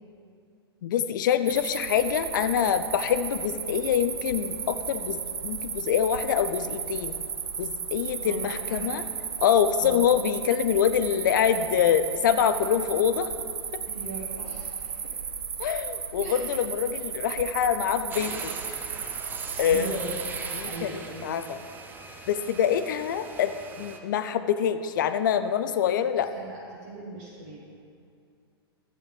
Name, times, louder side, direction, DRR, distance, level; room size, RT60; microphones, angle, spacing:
voice 1, 0.8-7.2 7.6-9.0 9.4-13.3 15.6-18.5 19.6-19.9 20.5-20.9 21.2-21.6 22.3-26.3, left 9 dB, 50° left, 11 dB, 0.4 m, -25 dB
sound 1, 1.5-20.8, right 7 dB, 70° right, 0.5 m, -34 dB
voice 2, 8.2-8.9 9.8-10.0 13.9-15.2 16.2-16.4 19.5-20.1 20.6-21.3 26.2-27.6, right 3 dB, 45° right, -5 dB, 1.6 m, -39 dB
sound 2, 18.1-24.0, right 4 dB, 15° right, 0.6 m, -41 dB
12.0 x 8.6 x 3.3 m, 2.4 s
figure-of-eight pair, 105°, 13 cm